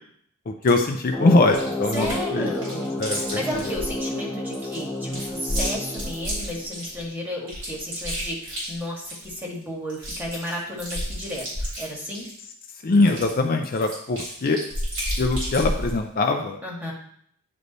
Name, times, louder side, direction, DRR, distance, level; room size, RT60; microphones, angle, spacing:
voice 1, 0.5-2.5 3.0-3.6 12.8-14.6 15.2-16.6, left 2 dB, 45° left, 4 dB, 0.5 m, -22 dB
Chewing mastication, 0.6-0.8 1.5-2.2 2.5-4.0 4.5-7.0 7.5-9.3 9.6-9.7 9.9-12.4 12.9-15.9, equal, 65° right, 3.1 m, -31 dB
sound 1, 1.1-6.9, left 1 dB, 15° left, 1.0 m, -31 dB
voice 2, 1.9-12.3 16.6-16.9, left 1 dB, 10° right, -3 dB, 1.6 m, -33 dB
9.3 x 3.3 x 4.0 m, 0.65 s
head